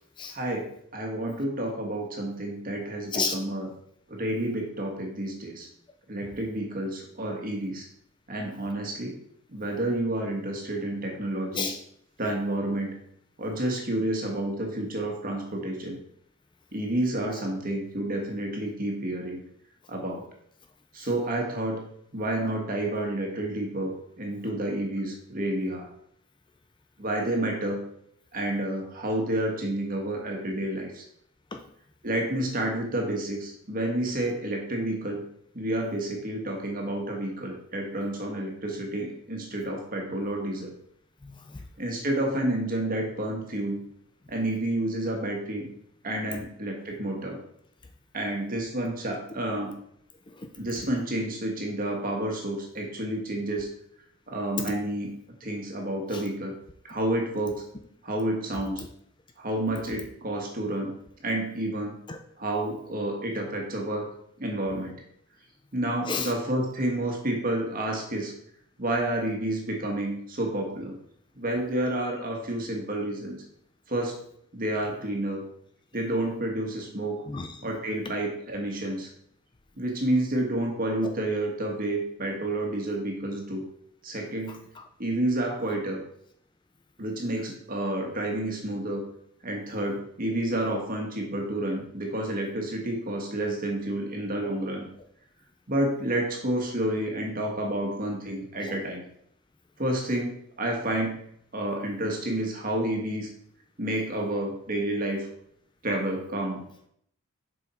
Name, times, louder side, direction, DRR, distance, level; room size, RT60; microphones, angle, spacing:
voice 1, 0.3-0.7 0.9-3.7 4.1-5.7 6.1-7.9 8.3-9.1 9.5-11.7 12.2-13.0 13.4-16.0 16.7-19.4 19.9-20.2 20.9-21.8 22.1-25.9 27.0-27.8 28.3-31.0 32.0-35.2 35.5-40.7 41.8-43.8 44.3-45.7 46.0-47.4 48.1-49.7 50.6-53.7 54.3-55.1 55.4-56.5 56.8-57.6 58.0-58.8 59.4-60.9 61.2-62.0 62.4-64.1 64.4-65.0 65.7-68.3 68.8-71.0 71.4-73.4 73.9-74.1 74.5-75.4 75.9-77.2 77.6-79.1 79.8-83.6 84.0-84.6 85.0-86.0 87.0-89.0 89.4-94.8 95.7-99.0 99.8-101.2 101.5-103.3 103.8-105.3 105.8-106.6, right 1 dB, 40° right, 1.7 m, -29 dB
voice 2, 41.2-41.6 50.4-50.5 56.1-56.2 62.1-62.2 66.1-66.3 77.3-77.6 84.5-84.8 98.6-98.8, left 4 dB, 20° left, 0.5 m, -32 dB
7.3 x 5.5 x 4.4 m
head